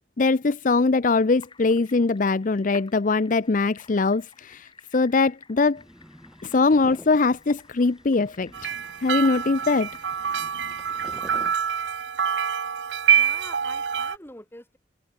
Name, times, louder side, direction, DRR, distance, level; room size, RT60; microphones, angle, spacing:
voice 1, 0.2-5.8 6.4-8.7 9.0-9.9, left 3 dB, 45° left, 0.5 m, -22 dB
sound 1, 1.0-11.0, left 4 dB, 25° left, 7.0 m, -53 dB
sound 2, 5.8-11.5, equal, 5° right, 1.8 m, -47 dB
sound 3, 8.5-14.2, right 8 dB, 75° right, 0.8 m, -26 dB
voice 2, 13.1-14.8, left 1 dB, 10° left, 2.6 m, -45 dB
head